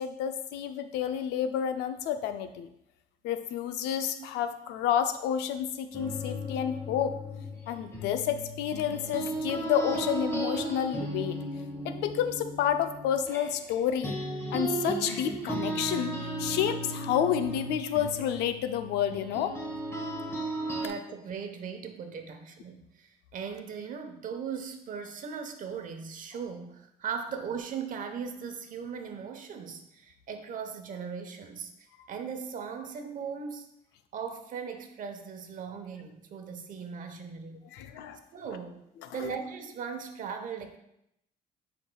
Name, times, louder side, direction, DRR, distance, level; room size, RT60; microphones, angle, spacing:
voice 1, 0.0-2.7 3.2-7.2 7.7-11.4 11.8-14.2 14.5-19.5 37.7-38.2 39.0-39.3, left 9 dB, 90° left, 9 dB, 0.5 m, -30 dB
sound 1, 5.9-13.7 14.0-20.9, right 1 dB, 15° left, 1.6 m, -35 dB
voice 2, 20.7-31.7 32.1-33.7 34.1-37.6 38.3-38.8 39.1-40.8, right 6 dB, 50° right, 6 dB, 1.0 m, -38 dB
9.7 x 4.6 x 2.3 m, 0.79 s
cardioid pair, 110°, 17 cm